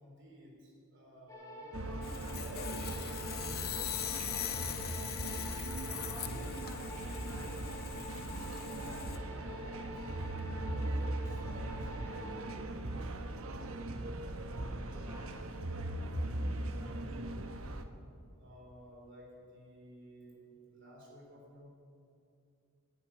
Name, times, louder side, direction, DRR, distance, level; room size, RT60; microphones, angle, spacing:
voice 1, 0.0-5.0 8.5-14.0 18.4-21.7, equal, 55° right, -1 dB, 3.7 m, -55 dB
sound 1, 1.3-12.5, equal, 15° left, 1.8 m, -48 dB
sound 2, 1.7-17.8, right 1 dB, 70° right, 1.0 m, -39 dB
Sawing, 2.0-9.2, left 10 dB, 45° left, 0.7 m, -41 dB
voice 2, 5.9-7.5 14.9-15.8 16.3-17.0, left 1 dB, 15° right, -6 dB, 2.8 m, -55 dB
10.5 x 10.5 x 9.2 m, 2.5 s
head